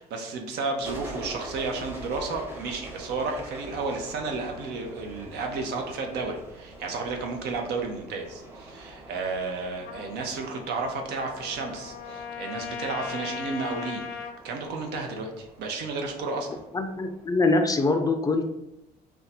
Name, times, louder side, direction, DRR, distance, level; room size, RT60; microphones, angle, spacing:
voice 1, 0.0-14.0 14.4-16.6, right 3 dB, 75° right, 3 dB, 0.6 m, -32 dB
sound 1, 0.8-17.3, right 1 dB, 15° right, 0.7 m, -44 dB
Trumpet, 9.8-14.4, left 6 dB, 75° left, 0.5 m, -38 dB
voice 2, 16.7-18.5, left 3 dB, 20° left, 5 dB, 0.4 m, -23 dB
2.6 x 2.2 x 4.1 m, 0.86 s
cardioid pair, 110°, 17 cm